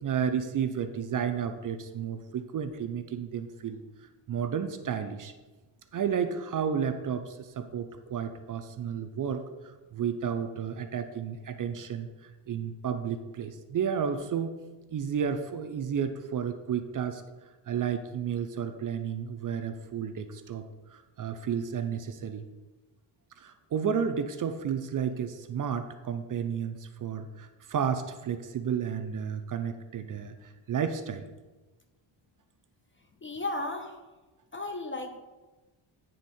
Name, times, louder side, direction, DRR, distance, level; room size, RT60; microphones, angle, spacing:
voice 1, 0.0-5.3 5.9-14.5 14.9-17.2 17.7-22.4 23.4-31.2, right 7 dB, 45° right, 8 dB, 0.4 m, -32 dB
voice 2, 33.2-34.0 34.5-35.2, left 2 dB, 25° left, 5 dB, 0.4 m, -34 dB
9.2 x 3.5 x 4.2 m, 1.2 s
wide cardioid pair, 145°, 49 cm